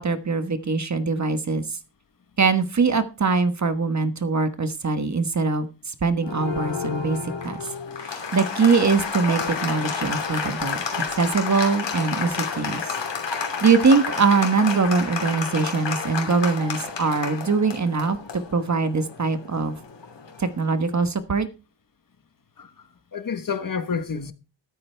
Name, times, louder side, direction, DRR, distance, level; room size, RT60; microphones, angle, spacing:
voice 1, 0.0-1.8 2.4-7.2 7.4-7.6 8.0-12.9 13.3-19.8 20.4-21.5, right 4 dB, 40° right, 1.2 m, -22 dB
Applause, 6.2-20.6, left 5 dB, 75° left, 3.0 m, -30 dB
voice 2, 22.6-24.3, left 6 dB, 50° left, 1.2 m, -30 dB
13.5 x 13.0 x 3.4 m
wide cardioid pair, 145°, 44 cm